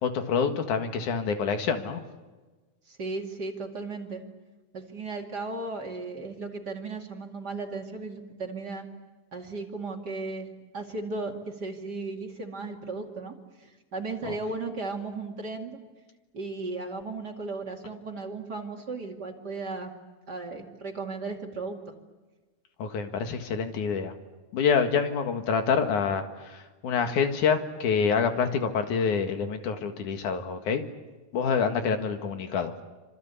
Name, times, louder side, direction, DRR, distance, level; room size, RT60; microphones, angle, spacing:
voice 1, 0.0-2.0 14.2-14.3 22.8-24.1 24.5-30.8 31.3-32.7, left 6 dB, 90° left, 6 dB, 3.3 m, -27 dB
voice 2, 2.9-4.2 4.7-8.9 9.3-10.5 10.7-15.8 16.3-19.9 20.3-21.8, right 3 dB, 35° right, 2 dB, 2.7 m, -35 dB
27.0 x 26.0 x 8.4 m, 1.2 s
omnidirectional pair, 3.4 m